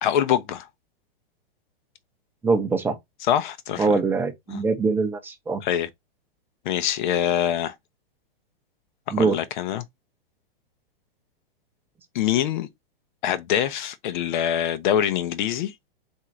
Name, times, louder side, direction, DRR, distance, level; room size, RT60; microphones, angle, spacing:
voice 1, 0.0-0.7 3.3-3.9 4.5-4.6 5.6-5.9 6.6-7.8 9.1-9.8 12.1-12.7 13.2-15.7, left 10 dB, 55° left, 0.8 m, -24 dB
voice 2, 2.4-3.0 3.8-5.6 9.1-9.4, right 4 dB, 5° right, 0.6 m, -23 dB
3.7 x 2.7 x 4.4 m
hypercardioid pair, 145°, 29 cm